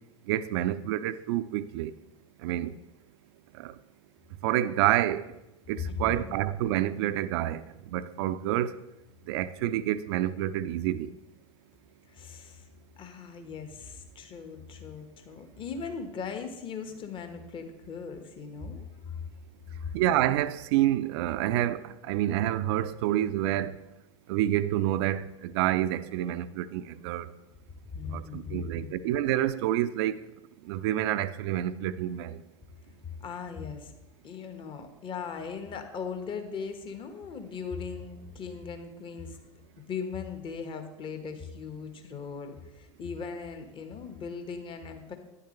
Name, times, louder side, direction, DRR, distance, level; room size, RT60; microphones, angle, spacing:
voice 1, 0.3-1.9 2.4-2.7 3.6-3.7 4.4-5.3 5.7-8.7 9.3-11.1 19.9-23.8 24.3-27.3 28.1-30.2 30.6-32.4, right 13 dB, 50° right, 0.6 m, -28 dB
voice 2, 5.8-6.3 12.0-12.7 13.0-19.2 27.9-29.0 33.2-33.9 34.2-39.4 39.9-45.2, left 5 dB, 30° left, 1.4 m, -39 dB
12.5 x 10.0 x 3.2 m
figure-of-eight pair, 80°, 16 cm